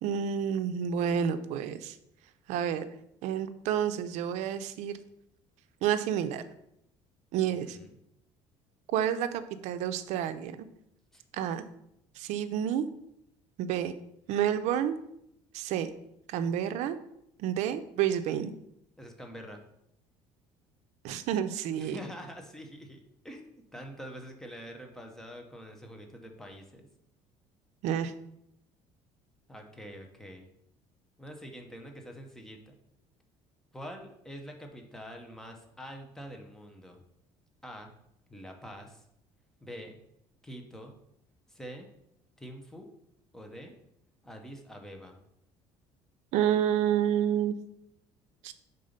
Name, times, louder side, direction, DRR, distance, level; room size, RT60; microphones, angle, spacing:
voice 1, 0.0-2.0 2.5-2.9 3.2-5.0 5.8-6.4 7.3-7.8 8.9-10.6 11.3-11.6 12.2-12.9 13.6-13.9 14.3-14.9 15.5-15.9 16.3-17.0 17.4-18.5 21.0-22.0 27.8-28.1 46.3-47.6 48.4-48.5, right 9 dB, 75° right, 11 dB, 0.5 m, -29 dB
voice 2, 7.5-7.9 11.1-11.2 19.0-19.6 21.8-26.9 29.5-30.5 31.2-32.7 33.7-37.0 37.6-37.9 38.3-39.0 39.6-40.0 40.4-40.9 41.5-41.9 42.4-42.9 43.3-43.7 44.2-45.2, equal, 5° left, 3 dB, 0.8 m, -45 dB
5.5 x 4.0 x 5.1 m, 0.78 s
cardioid pair, 150°, 12 cm